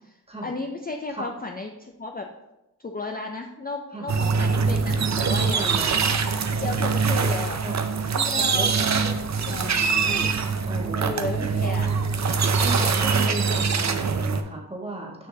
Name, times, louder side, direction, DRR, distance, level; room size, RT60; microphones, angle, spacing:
voice 1, 0.1-2.3 2.8-5.6 6.6-7.6 8.0-9.2 9.4-10.3 11.0-11.9 12.7-13.0, left 3 dB, 25° left, 3 dB, 0.5 m, -34 dB
sound 1, 4.1-14.4, right 5 dB, 45° right, 0.6 m, -23 dB
voice 2, 5.5-6.0 7.6-7.8 8.3-8.7 9.4-10.1 10.6-11.7 12.6-15.3, right 2 dB, 15° right, -1 dB, 1.4 m, -35 dB
6.2 x 5.7 x 2.8 m, 0.92 s
cardioid pair, 55°, 39 cm